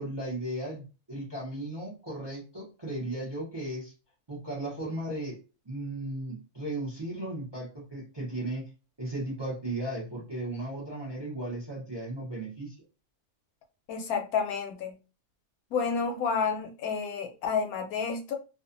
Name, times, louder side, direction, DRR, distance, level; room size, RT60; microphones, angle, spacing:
voice 1, 0.0-3.9 4.3-5.4 5.6-8.7 9.0-12.8, right 1 dB, 25° right, 0.5 m, -36 dB
voice 2, 13.9-14.9 15.7-18.3, left 6 dB, 75° left, 1.0 m, -30 dB
2.5 x 2.3 x 2.5 m
omnidirectional pair, 1.6 m